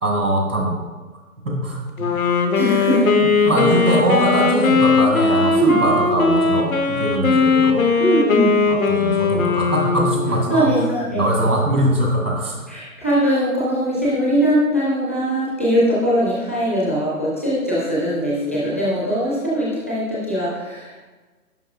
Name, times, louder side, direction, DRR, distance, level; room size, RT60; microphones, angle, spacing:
voice 1, 0.0-0.8 1.5-2.1 3.2-7.9 8.7-10.7 11.2-12.6, right 1 dB, 80° right, -1 dB, 1.8 m, -22 dB
Wind instrument woodwind instrument, 2.0-10.6, left 4 dB, 65° left, 1.0 m, -18 dB
voice 2, 2.5-3.8 5.5-5.8 8.0-8.6 10.5-11.5 12.7-21.0, right 1 dB, 10° left, -8 dB, 0.5 m, -21 dB
10.5 x 4.7 x 2.5 m, 1.3 s
figure-of-eight pair, 140°, 44 cm